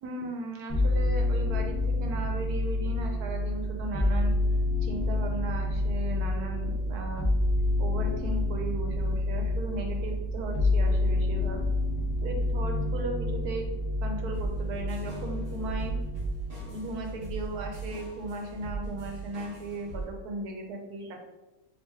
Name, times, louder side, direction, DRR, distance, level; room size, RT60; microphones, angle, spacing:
voice 1, 0.0-4.3 4.8-7.3 7.8-11.6 12.2-13.7 14.0-15.9 16.6-21.1, right 2 dB, 80° right, 3 dB, 1.2 m, -37 dB
sound 1, 0.7-18.1 18.5-19.2, left 2 dB, 25° left, 0.8 m, -28 dB
sound 2, 14.3-20.0, right 4 dB, 25° right, 1.2 m, -39 dB
4.5 x 3.1 x 2.8 m, 1.0 s
omnidirectional pair, 1.6 m